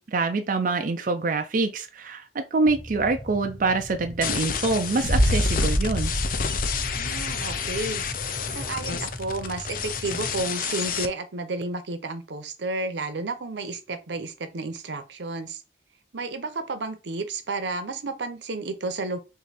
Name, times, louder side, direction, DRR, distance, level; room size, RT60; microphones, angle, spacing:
voice 1, 0.0-6.1, right 3 dB, 50° right, 0.5 m, -25 dB
sound 1, 2.7-10.4, equal, ahead, 0.6 m, -39 dB
sound 2, 4.2-11.1, left 7 dB, 50° left, 0.5 m, -30 dB
Boom, 5.0-8.0, equal, 80° left, 1.5 m, -25 dB
voice 2, 6.9-8.0 8.5-15.6 16.1-19.2, right 2 dB, 90° right, 0.8 m, -32 dB
4.8 x 2.6 x 4.1 m
head